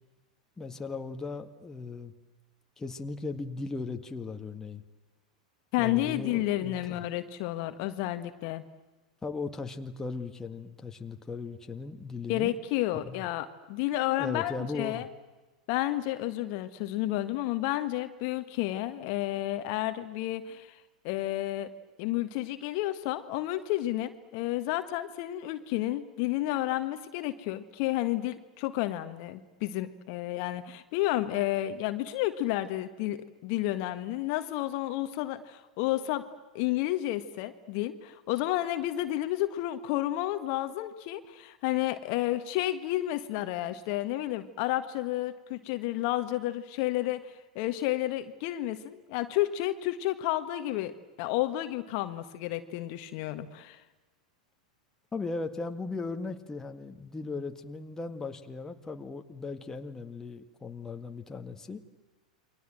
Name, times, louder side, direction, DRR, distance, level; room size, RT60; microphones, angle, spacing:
voice 1, 0.6-2.1 2.8-4.8 5.8-7.0 9.2-12.5 13.0-13.3 14.2-15.1 55.1-61.8, left 3 dB, 15° left, 5 dB, 2.0 m, -37 dB
voice 2, 5.7-8.6 12.3-15.1 15.7-20.8 21.0-21.7 22.0-36.2 36.5-50.9 51.2-53.8, left 15 dB, 50° left, 9 dB, 1.6 m, -31 dB
29.5 x 23.5 x 7.7 m, 1.2 s
figure-of-eight pair, 95°, 4 cm